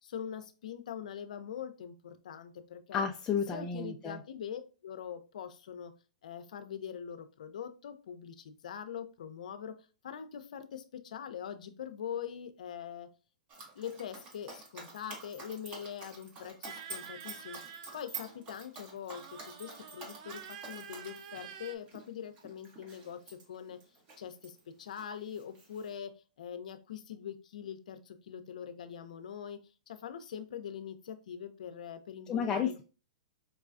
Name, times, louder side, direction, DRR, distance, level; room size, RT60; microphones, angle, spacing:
voice 1, 0.0-3.0 3.5-5.9 6.2-9.8 10.0-13.1 13.7-23.8 24.2-29.6 29.9-32.7, left 8 dB, 75° left, 9 dB, 0.6 m, -43 dB
voice 2, 2.9-4.2 32.3-32.8, left 6 dB, 20° left, 2 dB, 0.4 m, -32 dB
Dog, 13.5-24.6 24.9-26.0, right 4 dB, 30° right, 1.0 m, -48 dB
sound 1, 16.7-18.5 19.1-21.8, right 8 dB, 50° right, 0.5 m, -48 dB
4.7 x 2.3 x 2.4 m, 0.34 s
hypercardioid pair, 135°, 4 cm